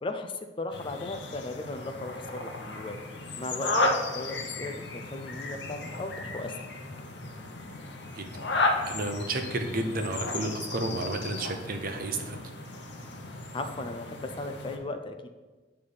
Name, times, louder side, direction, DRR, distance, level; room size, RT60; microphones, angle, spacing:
voice 1, 0.0-3.0 3.4-6.5 13.5-15.3, left 2 dB, 25° left, 6 dB, 0.4 m, -36 dB
sound 1, 0.7-14.8, left 2 dB, 65° left, 0.9 m, -34 dB
voice 2, 8.5-12.4, right 2 dB, 50° right, 5 dB, 0.7 m, -32 dB
8.5 x 3.3 x 5.5 m, 1.3 s
head